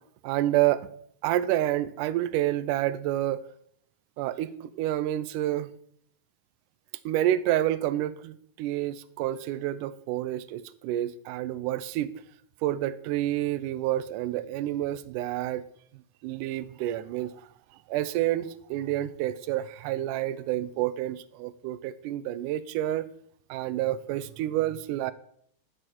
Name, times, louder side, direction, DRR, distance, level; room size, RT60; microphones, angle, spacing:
voice 1, 0.2-0.9 1.2-3.4 4.2-5.7 7.1-12.1 12.6-15.6 16.2-17.5 17.9-23.1 23.5-25.1, right 13 dB, 80° right, 16 dB, 2.0 m, -29 dB
12.5 x 6.9 x 4.5 m, 0.67 s
omnidirectional pair, 3.8 m